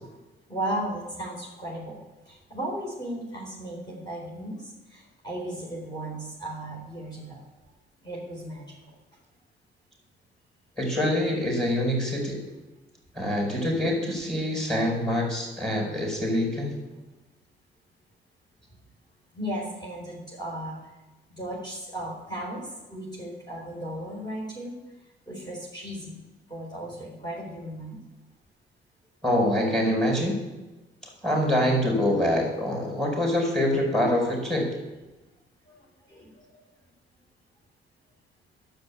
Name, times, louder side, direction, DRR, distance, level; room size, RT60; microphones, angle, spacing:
voice 1, 0.5-2.0 2.3-7.4 8.0-8.7 19.3-20.8 21.3-24.7 25.3-26.2 26.5-28.0 35.7-35.8 36.1-36.3, right 1 dB, 20° left, -5 dB, 4.0 m, -35 dB
voice 2, 10.8-12.4 13.1-16.7 29.2-30.3 31.2-34.7, left 1 dB, 5° left, -1 dB, 4.7 m, -25 dB
9.6 x 7.7 x 8.3 m, 1.1 s
cardioid pair, 90°, 20 cm